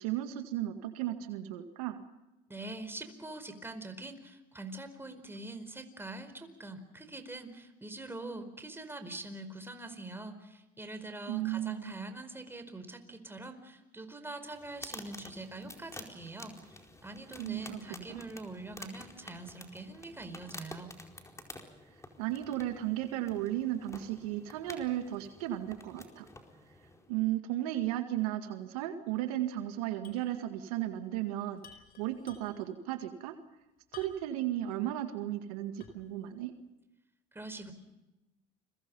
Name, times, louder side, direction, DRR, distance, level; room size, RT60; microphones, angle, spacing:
voice 1, 0.0-2.0 11.3-11.9 17.4-17.8 18.1-18.2 22.2-26.3 27.1-31.6 32.0-33.3 33.9-36.5, right 13 dB, 85° right, 7 dB, 1.9 m, -35 dB
voice 2, 2.5-20.9 37.3-37.7, right 2 dB, 10° right, 8 dB, 4.7 m, -44 dB
sound 1, 14.5-27.1, left 2 dB, 15° left, 4.5 m, -50 dB
sound 2, 30.0-30.3 30.6-30.7 31.6-32.7 33.9-34.4 34.9-35.0 35.8-36.2, left 6 dB, 55° left, 4.5 m, -53 dB
30.0 x 23.5 x 5.5 m, 0.97 s
hypercardioid pair, 75°, 18 cm